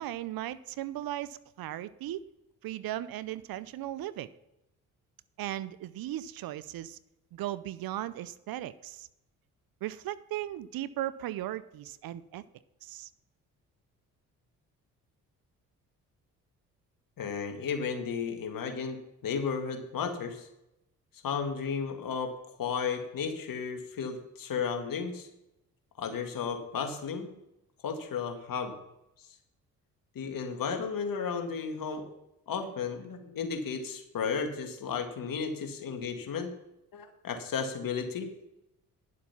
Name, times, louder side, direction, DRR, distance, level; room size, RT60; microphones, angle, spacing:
voice 1, 0.0-2.3 2.6-4.3 5.4-7.0 7.3-9.1 9.8-12.4 12.8-13.1, right 13 dB, 60° right, 16 dB, 0.7 m, -37 dB
voice 2, 17.2-19.0 19.2-20.5 21.2-22.3 22.6-25.3 26.0-27.4 27.8-28.8 30.2-32.0 32.5-36.5 36.9-38.3, left 6 dB, 55° left, 5 dB, 2.0 m, -33 dB
11.0 x 7.4 x 5.8 m, 0.87 s
hypercardioid pair, 50°, 39 cm